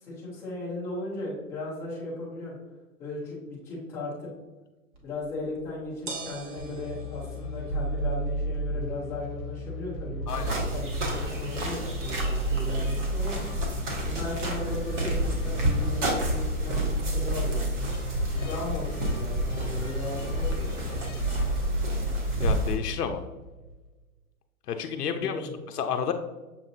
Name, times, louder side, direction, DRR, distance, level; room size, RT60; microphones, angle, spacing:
voice 1, 0.0-2.5 3.0-4.3 5.0-10.4 10.7-13.3 14.0-17.9 18.3-20.8 25.1-25.5, left 2 dB, 5° left, -7 dB, 0.5 m, -36 dB
sound 1, 4.9-15.0, right 3 dB, 35° right, 1.1 m, -48 dB
sound 2, 6.6-23.9, right 1 dB, 60° left, 0.9 m, -33 dB
sound 3, 10.3-22.7, equal, 50° right, 1.5 m, -30 dB
voice 2, 22.4-23.2 24.7-26.1, left 7 dB, 85° left, 6 dB, 0.6 m, -31 dB
6.9 x 2.5 x 2.7 m, 1.2 s
hypercardioid pair, 145°, 45 cm